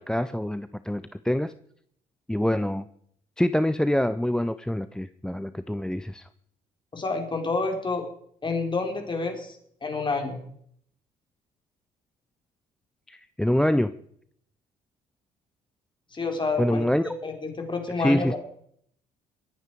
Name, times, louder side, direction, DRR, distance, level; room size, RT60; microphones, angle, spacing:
voice 1, 0.0-1.5 2.3-2.9 3.4-6.3 13.1-13.9 16.6-17.1 18.0-18.4, left 1 dB, 5° left, 14 dB, 0.6 m, -25 dB
voice 2, 6.9-8.0 8.4-10.4 16.1-16.8 17.2-18.3, left 3 dB, 30° left, 3 dB, 4.3 m, -29 dB
23.0 x 9.5 x 4.9 m, 0.67 s
supercardioid pair, 65°, 15 cm